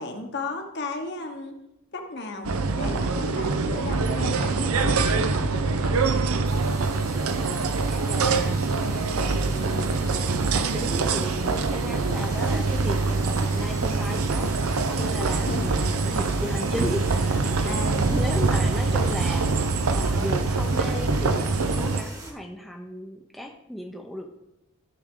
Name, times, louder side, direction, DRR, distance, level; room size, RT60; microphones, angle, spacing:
voice 1, 0.0-1.5 1.9-5.9 15.2-15.7 17.6-18.1, left 3 dB, 50° left, 4 dB, 1.2 m, -34 dB
sound 1, 2.4-22.0, right 3 dB, 85° right, 0.7 m, -24 dB
sound 2, 6.4-22.3, right 1 dB, 15° right, 1.2 m, -42 dB
voice 2, 7.3-8.9 9.2-14.5 14.9-24.3, equal, ahead, 3 dB, 0.6 m, -36 dB
13.5 x 6.3 x 3.8 m, 0.88 s
head